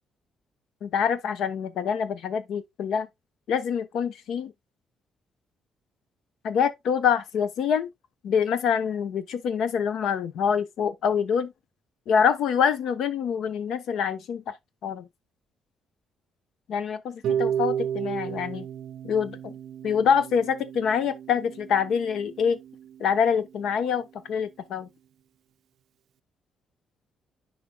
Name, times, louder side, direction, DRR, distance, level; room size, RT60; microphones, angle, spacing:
voice 1, 0.8-3.1 3.5-4.5 6.4-7.9 8.2-11.5 12.1-14.5 14.8-15.1 16.7-18.7 19.0-19.5 19.8-22.6 23.0-24.9, left 7 dB, 75° left, 0.9 m, -25 dB
Harp, 17.2-23.3, right 9 dB, 75° right, 0.3 m, -33 dB
10.0 x 5.0 x 2.2 m
cardioid pair, 90°, 0 cm